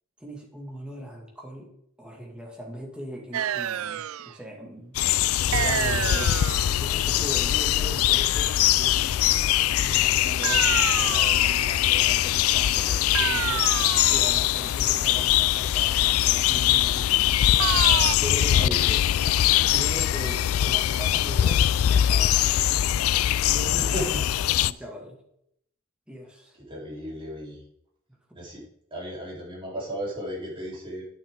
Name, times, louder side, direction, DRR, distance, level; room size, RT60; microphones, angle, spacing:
voice 1, 0.2-1.7 2.0-5.0 5.4-9.3 9.7-13.6 14.1-17.4 18.2-19.0 19.7-24.0 24.6-25.2 26.1-26.6 28.3-28.4, right 1 dB, 5° right, -1 dB, 2.3 m, -39 dB
sound 1, 3.3-4.3 5.5-6.8 10.4-11.8 13.1-14.4 17.6-18.2, right 10 dB, 80° right, 0.4 m, -29 dB
sound 2, 4.9-24.7, left 12 dB, 90° left, 0.3 m, -22 dB
voice 2, 23.8-24.2 24.7-24.8 26.7-27.6 28.3-28.6 28.9-31.0, equal, 25° right, -5 dB, 4.0 m, -35 dB
10.5 x 8.8 x 3.8 m, 0.72 s
head